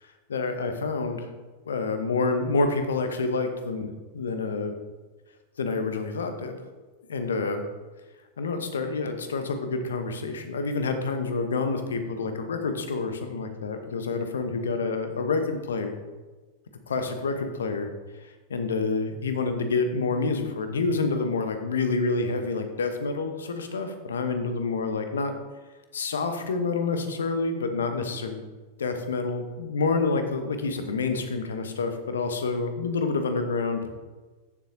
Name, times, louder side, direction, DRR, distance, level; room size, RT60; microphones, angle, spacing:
voice 1, 0.3-1.3 1.7-4.7 5.6-6.6 7.1-7.6 8.4-16.0 16.9-17.9 18.5-25.3 25.9-28.4 28.8-33.8, left 4 dB, 65° left, 7 dB, 1.0 m, -28 dB
14.0 x 7.3 x 2.8 m, 1.3 s
figure-of-eight pair, 90°, 0 cm